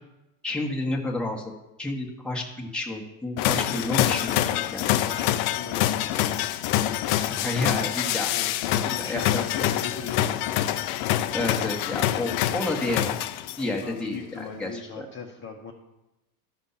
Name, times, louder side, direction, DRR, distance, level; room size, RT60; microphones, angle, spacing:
voice 1, 0.4-1.5 1.8-4.9 7.3-8.3 8.9-9.7 11.3-13.1 13.6-15.0, left 2 dB, ahead, -1 dB, 1.5 m, -30 dB
sound 1, 3.4-13.8, left 13 dB, 65° left, 0.7 m, -26 dB
voice 2, 3.5-6.3 8.3-10.5 13.8-15.7, left 4 dB, 25° left, -1 dB, 1.2 m, -38 dB
13.5 x 5.2 x 5.7 m, 0.97 s
supercardioid pair, 120°, 46 cm